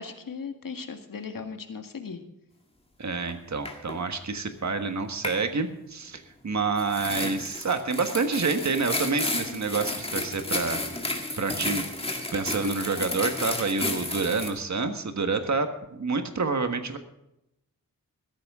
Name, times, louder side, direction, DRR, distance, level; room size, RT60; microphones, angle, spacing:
voice 1, 0.0-2.2, left 5 dB, 70° left, 6 dB, 1.8 m, -37 dB
voice 2, 3.0-11.8 12.3-17.0, right 4 dB, 55° right, 7 dB, 1.5 m, -28 dB
sound 1, 3.3-3.4 3.7-4.0 5.2-5.4 6.8-14.5, left 2 dB, 15° left, 2.1 m, -32 dB
16.0 x 14.0 x 3.7 m, 0.86 s
wide cardioid pair, 115°, 35 cm